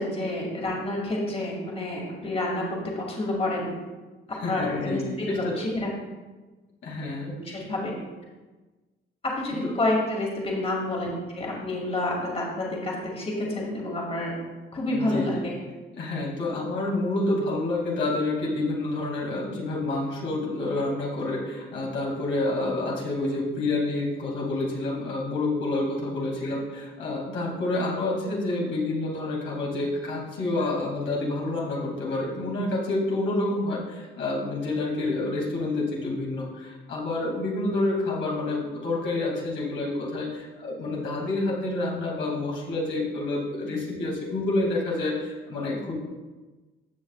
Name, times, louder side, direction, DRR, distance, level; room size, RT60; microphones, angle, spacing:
voice 1, 0.0-2.6 3.0-3.7 4.5-5.9 7.4-7.9 9.2-11.1 11.4-14.3 14.7-15.5, left 1 dB, 30° left, -2 dB, 2.2 m, -28 dB
voice 2, 4.3-5.5 6.8-7.6 9.5-9.7 14.9-15.4 15.9-46.0, left 2 dB, 75° left, -4 dB, 2.6 m, -28 dB
15.5 x 6.1 x 2.4 m, 1.2 s
cardioid pair, 90°, 20 cm